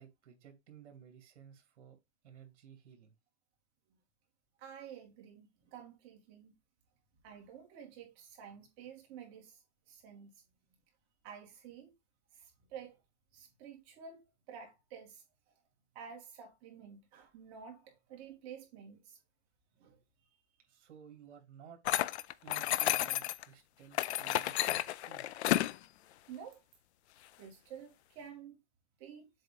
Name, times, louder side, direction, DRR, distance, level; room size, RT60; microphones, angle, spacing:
voice 1, 0.0-2.0 2.2-3.1 20.7-21.8 22.4-25.3, right 8 dB, 65° right, 2.7 m, -56 dB
voice 2, 4.6-6.5 7.2-9.6 9.9-10.3 11.2-11.9 12.3-13.0 13.3-14.2 14.5-15.2 15.9-19.2 19.8-20.0 26.3-26.6 27.4-28.6 29.0-29.3, right 7 dB, 30° right, 2.1 m, -50 dB
sound 1, 21.9-23.4 23.9-25.8, left 14 dB, 65° left, 0.6 m, -32 dB
7.7 x 2.8 x 5.0 m
supercardioid pair, 170°, 36 cm